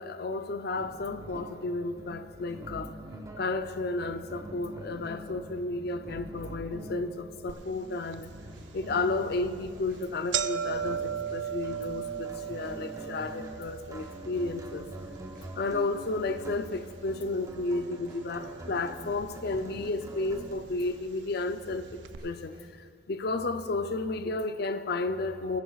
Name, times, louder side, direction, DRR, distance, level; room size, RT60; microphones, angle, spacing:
voice 1, 0.0-3.0 3.4-8.3 8.7-14.9 15.6-25.6, left 3 dB, 60° left, 9 dB, 0.5 m, -32 dB
sound 1, 0.8-20.5, right 1 dB, 20° right, 0.7 m, -45 dB
sound 2, 7.5-7.6 8.1-8.2 9.0-9.2 9.6-9.7 9.9-18.1 18.4-19.2 20.0-20.1 21.0-21.1 21.4-21.5 22.0-22.2, right 8 dB, 85° right, 0.4 m, -37 dB
sound 3, 8.2-22.7, equal, 55° right, 3.0 m, -52 dB
17.0 x 10.5 x 2.4 m, 2.1 s
head